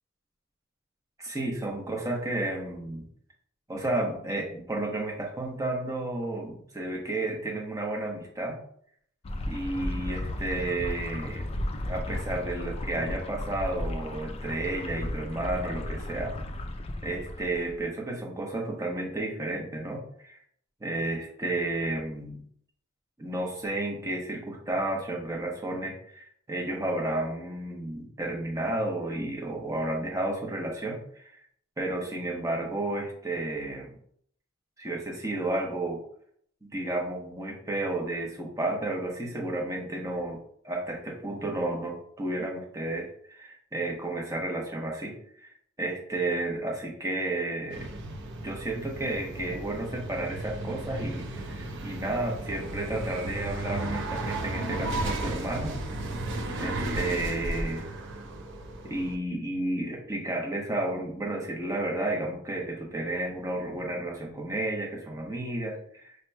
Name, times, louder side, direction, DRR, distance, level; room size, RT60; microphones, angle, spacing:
voice 1, 1.2-3.1 3.7-8.6 9.5-11.5 11.9-16.4 17.0-20.4 20.8-22.4 23.2-31.4 31.8-33.9 34.8-36.0 36.6-40.4 40.6-45.5 45.8-47.9 48.4-55.8 56.6-57.8 58.8-66.2, right 2 dB, 15° right, 0 dB, 0.9 m, -32 dB
sound 1, 9.2-17.8, left 1 dB, 30° left, 0.4 m, -35 dB
sound 2, 47.7-59.2, right 1 dB, 60° right, 0.6 m, -34 dB
6.3 x 2.9 x 2.2 m, 0.64 s
head